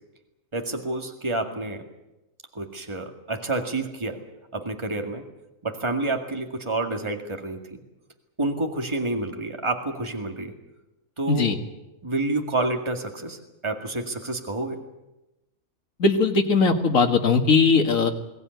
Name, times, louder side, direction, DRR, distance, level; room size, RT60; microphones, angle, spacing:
voice 1, 0.5-1.8 2.5-4.3 4.5-5.2 5.6-7.8 8.4-10.5 11.2-11.6 12.0-13.4 13.6-14.8, right 2 dB, 20° right, 4 dB, 2.1 m, -29 dB
voice 2, 16.0-18.1, left 4 dB, 75° left, 3 dB, 2.2 m, -19 dB
22.5 x 16.5 x 9.5 m, 0.99 s
omnidirectional pair, 1.4 m